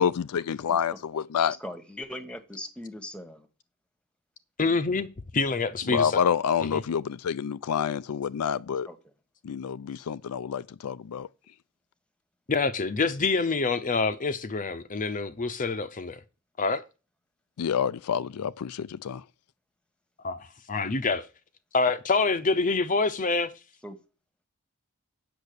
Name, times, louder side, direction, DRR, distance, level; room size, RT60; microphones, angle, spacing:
voice 1, 0.0-1.5 5.9-8.9 9.4-11.3 17.6-19.2, left 7 dB, 80° left, 0.4 m, -28 dB
voice 2, 0.7-1.0 1.5-3.5 8.9-9.1 23.8-24.0, left 1 dB, 5° left, 1.3 m, -40 dB
voice 3, 4.6-5.1 5.3-6.2 6.7-6.8 12.5-16.2 16.6-16.8 20.2-20.4 20.7-21.3 21.7-23.5, left 4 dB, 35° left, 0.7 m, -26 dB
8.3 x 6.7 x 6.7 m
head